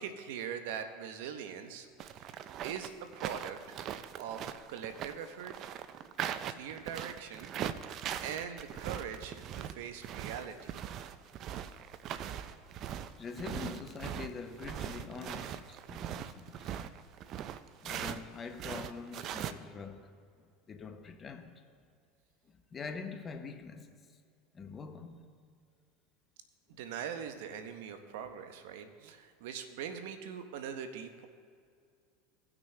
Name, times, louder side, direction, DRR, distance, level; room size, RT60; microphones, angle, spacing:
voice 1, 0.0-1.9 2.2-2.3 2.6-3.8 4.2-5.5 6.5-7.5 8.2-10.7 26.8-31.3, right 8 dB, 75° right, 0.9 m, -42 dB
sound 1, 2.0-18.2 18.5-19.5, right 10 dB, 50° right, 0.5 m, -40 dB
voice 2, 13.2-16.8 17.8-20.1 20.4-21.5 22.5-24.0 24.5-25.3, left 5 dB, 30° left, 0.9 m, -44 dB
18.0 x 6.1 x 3.3 m
supercardioid pair, 105°, 0 cm